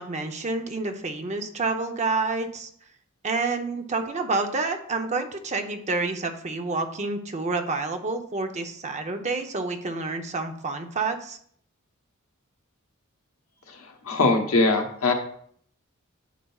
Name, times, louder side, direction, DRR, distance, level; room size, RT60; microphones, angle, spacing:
voice 1, 0.0-2.7 3.2-11.4, right 3 dB, 35° right, 5 dB, 0.7 m, -28 dB
voice 2, 13.7-15.1, left 3 dB, 85° left, 3 dB, 1.1 m, -22 dB
10.0 x 5.6 x 2.4 m, 0.62 s
head